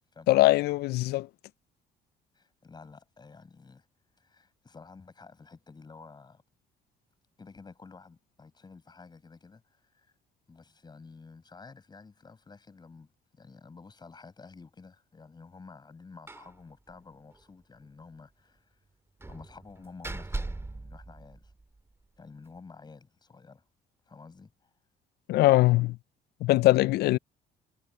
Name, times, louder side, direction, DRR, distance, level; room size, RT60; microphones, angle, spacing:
voice 1, 0.3-1.3 25.3-26.0 26.4-27.2, left 17 dB, 70° left, 0.4 m, -22 dB
voice 2, 2.3-3.9 4.2-6.4 7.4-10.1 10.5-18.8 19.2-21.5 22.2-23.6 24.1-24.7, left 4 dB, 25° left, 7.2 m, -51 dB
Slam, 16.3-16.6 16.9-17.0 17.3-17.4 19.2-21.8, right 2 dB, 15° right, 3.3 m, -39 dB
cardioid pair, 110°, 17 cm